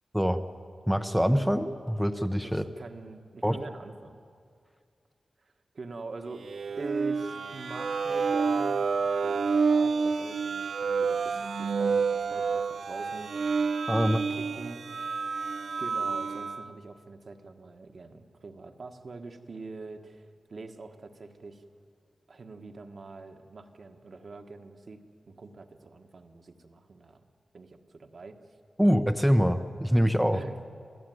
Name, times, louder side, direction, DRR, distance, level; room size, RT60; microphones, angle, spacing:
voice 1, 0.9-2.6 3.4-3.6 13.9-14.2 28.8-30.4, equal, ahead, 7 dB, 0.7 m, -24 dB
voice 2, 2.4-4.2 5.4-6.4 6.8-13.5 14.0-14.8 15.8-21.6 22.3-27.2 27.5-28.4 30.3-30.7, right 3 dB, 55° right, 5 dB, 1.5 m, -44 dB
sound 1, 6.4-16.7, right 5 dB, 80° right, 0.8 m, -29 dB
26.5 x 16.5 x 9.4 m, 2.3 s
wide cardioid pair, 135°, 0 cm